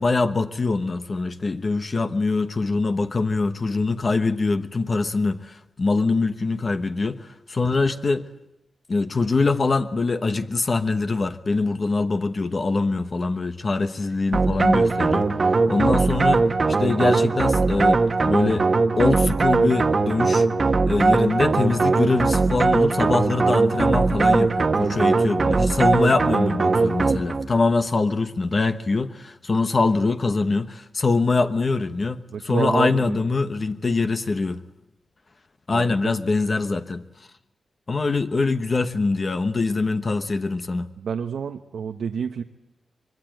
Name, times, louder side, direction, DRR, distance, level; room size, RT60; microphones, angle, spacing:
voice 1, 0.0-8.2 8.9-15.3 15.7-16.4 16.8-18.7 19.0-20.5 20.9-34.6 35.7-37.0 37.9-40.9, left 3 dB, 40° left, 1.0 m, -23 dB
sound 1, 14.3-27.5, right 3 dB, 40° right, 1.3 m, -20 dB
voice 2, 32.3-33.2 35.7-36.1 41.0-42.4, right 6 dB, 90° right, 1.1 m, -28 dB
25.0 x 22.5 x 9.2 m
wide cardioid pair, 115°, 0 cm